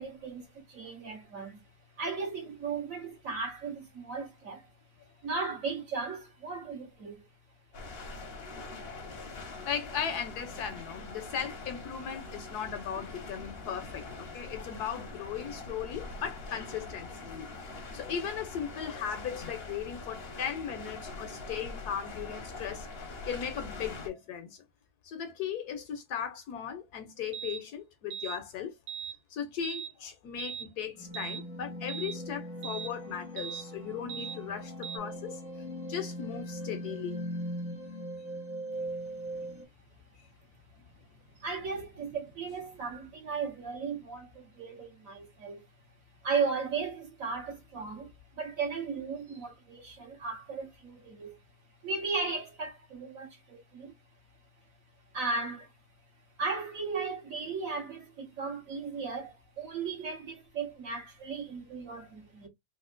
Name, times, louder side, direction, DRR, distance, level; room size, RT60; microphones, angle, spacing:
voice 1, 0.0-1.6 1.9-4.7 5.2-7.2 12.0-12.6 13.0-13.1 14.4-14.5 16.1-16.2 17.5-17.8 41.3-45.7 46.2-51.4 51.8-54.0 55.1-55.7 56.4-62.5, right 4 dB, 50° right, 1.4 m, -36 dB
sound 1, 7.7-24.1, left 3 dB, 45° left, 0.8 m, -43 dB
voice 2, 9.6-22.9 23.3-24.6 25.0-28.7 29.3-35.4 35.9-37.2, left 8 dB, 70° left, 1.1 m, -37 dB
sound 2, 27.3-27.6 28.1-28.4 28.9-29.2 29.6-29.9 30.4-30.7 31.1-31.4 31.9-32.2 32.6-32.9 33.4-33.6 34.1-34.4 34.8-35.0, right 9 dB, 75° right, 1.0 m, -39 dB
sound 3, 31.0-39.6, equal, 10° right, 0.9 m, -40 dB
3.5 x 2.7 x 2.5 m
omnidirectional pair, 1.9 m